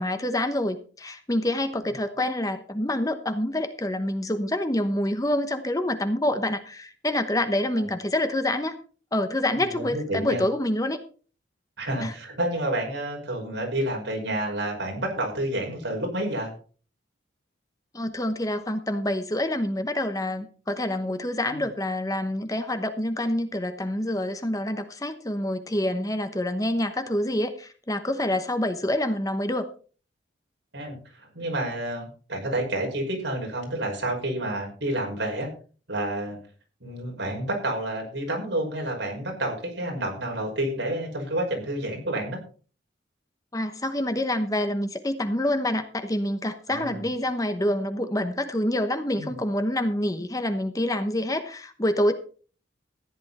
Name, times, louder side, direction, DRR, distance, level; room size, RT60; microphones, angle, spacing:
voice 1, 0.0-8.8 9.1-11.0 12.0-12.1 17.9-29.7 43.5-52.1, left 1 dB, 20° left, 9 dB, 1.0 m, -27 dB
voice 2, 9.5-10.4 11.8-16.5 21.5-21.6 30.7-35.5 35.9-36.4 36.8-42.4 46.7-47.1 49.2-49.4, right 1 dB, 70° right, 1 dB, 5.7 m, -29 dB
14.5 x 10.5 x 4.2 m, 0.39 s
head